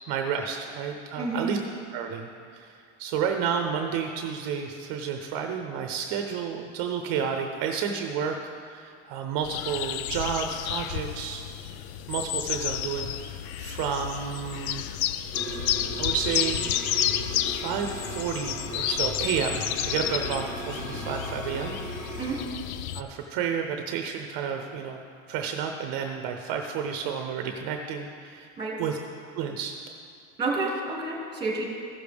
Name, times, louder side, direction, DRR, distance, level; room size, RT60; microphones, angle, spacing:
voice 1, 0.1-1.6 1.9-11.4 12.1-14.8 16.0-16.7 17.4-21.8 22.9-25.0 25.3-28.5 28.8-29.0 29.3-29.7, right 7 dB, 55° right, 4 dB, 0.7 m, -31 dB
voice 2, 1.1-1.5 22.2-22.4 28.6-28.8 30.4-31.6, right 3 dB, 10° right, -3 dB, 2.2 m, -29 dB
sound 1, 9.4-23.0, left 11 dB, 85° left, 0.5 m, -31 dB
sound 2, 15.3-22.5, right 2 dB, 5° left, 1.2 m, -38 dB
15.0 x 6.6 x 3.5 m, 2.3 s
supercardioid pair, 130°, 41 cm